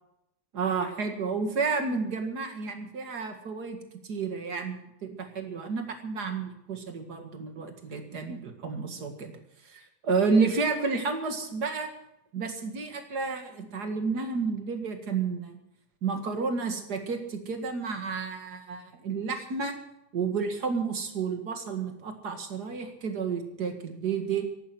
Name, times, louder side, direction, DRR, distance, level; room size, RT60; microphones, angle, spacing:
voice 1, 0.5-3.8 4.0-9.3 9.6-11.9 12.3-15.5 16.0-19.8 20.1-24.5, right 4 dB, 65° right, 6 dB, 2.5 m, -31 dB
14.5 x 11.5 x 7.8 m, 0.82 s
omnidirectional pair, 1.9 m